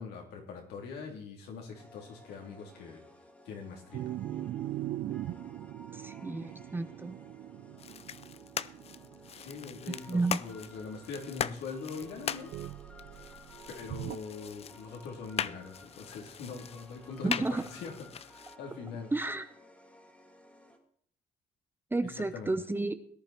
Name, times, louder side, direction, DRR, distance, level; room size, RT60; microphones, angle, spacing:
voice 1, 0.0-3.0 3.5-4.1 9.4-12.5 13.8-17.9 18.2-19.1 22.3-22.5, left 5 dB, 80° left, 1 dB, 3.6 m, -42 dB
sound 1, 1.7-20.8, left 1 dB, 10° left, 2.3 m, -56 dB
sound 2, 3.9-11.4 12.0-14.2, right 13 dB, 55° right, 0.5 m, -41 dB
voice 2, 5.9-7.2 10.1-10.4 17.2-17.6 19.1-19.4 21.9-22.9, right 2 dB, 10° right, 10 dB, 0.8 m, -31 dB
sound 3, 7.8-18.6, left 8 dB, 35° left, 0.5 m, -41 dB
17.5 x 10.5 x 4.5 m, 0.63 s
cardioid pair, 110°, 17 cm